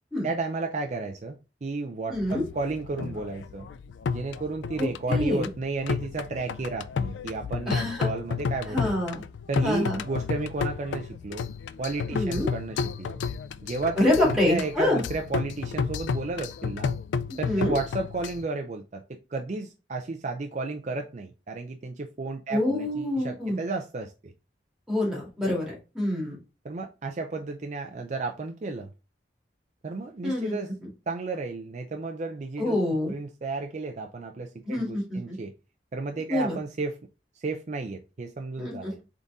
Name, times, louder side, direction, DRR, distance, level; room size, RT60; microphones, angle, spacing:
voice 1, 0.2-3.7 4.1-9.0 9.5-11.5 11.8-13.2 13.6-16.9 17.4-24.3 26.6-28.9 29.8-30.7 31.1-35.5 35.9-37.0 37.4-39.0, right 3 dB, 40° right, 0.4 m, -33 dB
sound 1, 2.1-18.4, left 6 dB, 85° left, 0.3 m, -32 dB
voice 2, 2.1-2.4 4.8-5.5 7.7-8.1 8.7-9.2 9.6-10.0 12.1-12.5 14.0-15.0 17.4-17.8 22.5-23.6 24.9-26.4 30.2-30.6 32.6-33.1 34.7-35.2 36.3-36.6 38.6-39.0, left 1 dB, 5° right, 1.9 m, -26 dB
3.9 x 3.8 x 3.6 m
head